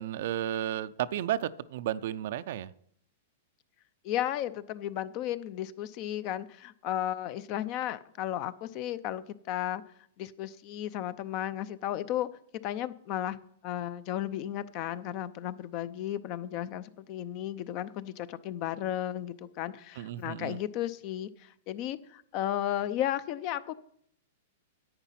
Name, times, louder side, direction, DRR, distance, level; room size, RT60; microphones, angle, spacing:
voice 1, 0.0-2.7 19.9-20.6, right 11 dB, 65° right, 14 dB, 0.5 m, -33 dB
voice 2, 4.0-9.8 10.2-12.3 12.6-23.7, left 12 dB, 45° left, 15 dB, 0.6 m, -34 dB
10.5 x 8.2 x 5.8 m, 0.68 s
hypercardioid pair, 125°, 0 cm